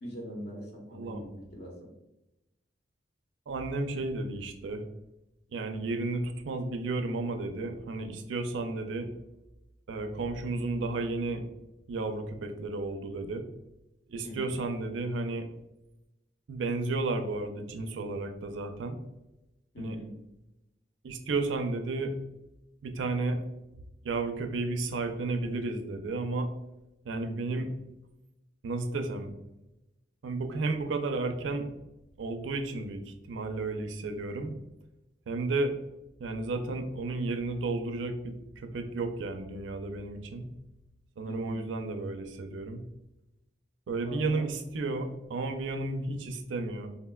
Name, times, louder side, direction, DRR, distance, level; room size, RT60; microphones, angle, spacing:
voice 1, 0.0-1.9 14.2-14.6 19.7-20.2 41.3-41.7 44.0-44.5, equal, 60° left, -1 dB, 0.8 m, -42 dB
voice 2, 0.9-1.2 3.5-4.8 5.5-9.1 9.9-11.4 11.9-13.5 14.1-15.5 16.5-19.0 19.8-20.0 21.0-22.2 22.8-23.4 24.0-26.5 27.0-27.7 28.6-29.3 30.2-31.7 32.2-34.5 35.3-35.8 36.2-40.5 41.2-42.8 43.9-46.9, right 3 dB, 85° right, 6 dB, 0.4 m, -32 dB
3.8 x 2.1 x 2.2 m, 0.94 s
head